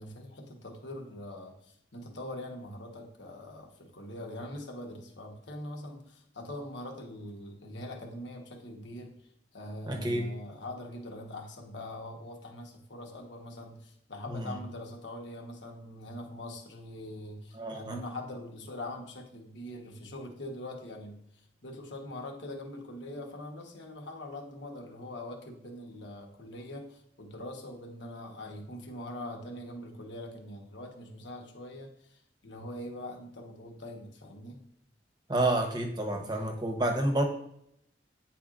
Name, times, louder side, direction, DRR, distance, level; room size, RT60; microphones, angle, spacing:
voice 1, 0.0-9.1 9.5-34.6, left 1 dB, 70° left, 2 dB, 1.2 m, -43 dB
voice 2, 9.9-10.3 14.3-14.6 17.6-18.0 35.3-37.2, right 1 dB, 20° right, 4 dB, 0.8 m, -29 dB
9.4 x 4.3 x 2.5 m, 0.73 s
head